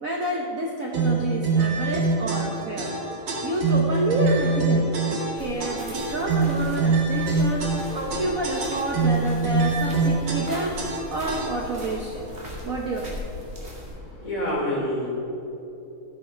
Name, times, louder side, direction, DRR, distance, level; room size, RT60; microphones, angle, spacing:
voice 1, 0.0-3.0 3.4-10.8 11.1-12.3 12.6-13.2, right 1 dB, 50° right, -1 dB, 1.2 m, -29 dB
sound 1, 0.9-11.8, right 3 dB, 85° right, 3.1 m, -24 dB
sound 2, 5.4-13.9, left 1 dB, 30° right, 2.5 m, -39 dB
voice 2, 13.9-15.1, equal, 35° left, -5 dB, 3.8 m, -28 dB
15.0 x 7.9 x 5.7 m, 3.0 s
omnidirectional pair, 2.4 m